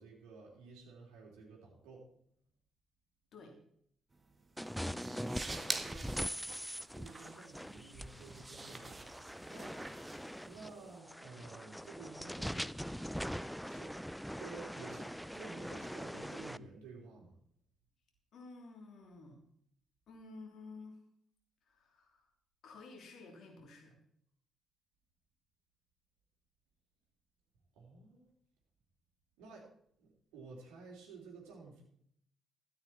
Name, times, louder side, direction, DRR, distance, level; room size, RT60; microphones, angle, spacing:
voice 1, 0.0-2.0 5.0-6.2 6.9-9.1 9.5-9.7 10.5-12.7 13.6-13.9 14.4-17.3 27.7-28.3 29.4-29.7 30.0-31.8, right 4 dB, 75° right, -1 dB, 3.3 m, -52 dB
sound 1, 4.1-11.0, right 3 dB, 30° right, 1.7 m, -46 dB
sound 2, 4.6-16.6, equal, ahead, 0.4 m, -42 dB
voice 2, 18.3-19.4 20.1-21.0 21.6-22.3 22.6-24.0, left 3 dB, 60° left, 2 dB, 3.3 m, -52 dB
13.0 x 9.5 x 4.3 m, 0.66 s
hypercardioid pair, 45°, 0 cm